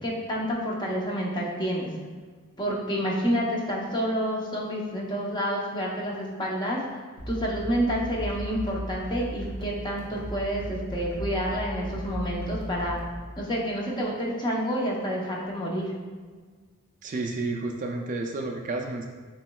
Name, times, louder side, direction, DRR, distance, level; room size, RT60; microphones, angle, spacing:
voice 1, 0.0-1.9 2.6-6.8 7.3-13.0 13.4-15.9, equal, 20° left, -3 dB, 0.8 m, -29 dB
sound 1, 7.2-13.2, right 1 dB, 45° left, 1.2 m, -36 dB
voice 2, 17.0-19.1, right 3 dB, 35° right, 2 dB, 0.3 m, -31 dB
7.1 x 3.1 x 2.3 m, 1.5 s
head